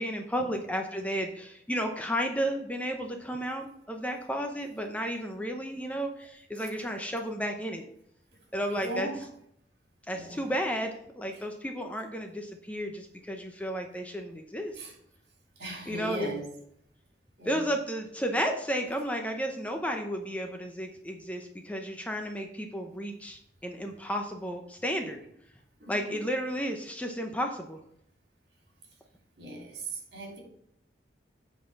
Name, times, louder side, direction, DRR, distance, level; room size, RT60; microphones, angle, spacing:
voice 1, 0.0-7.8 8.5-9.1 10.1-14.8 15.9-16.3 17.4-25.2 25.9-27.8, equal, 10° left, 4 dB, 0.7 m, -33 dB
voice 2, 8.7-9.3 10.1-10.5 11.3-11.4 14.7-14.9 15.6-16.6 17.4-17.7 25.8-26.3 29.4-30.4, right 2 dB, 70° right, 0 dB, 2.9 m, -39 dB
7.8 x 4.1 x 6.9 m, 0.71 s
head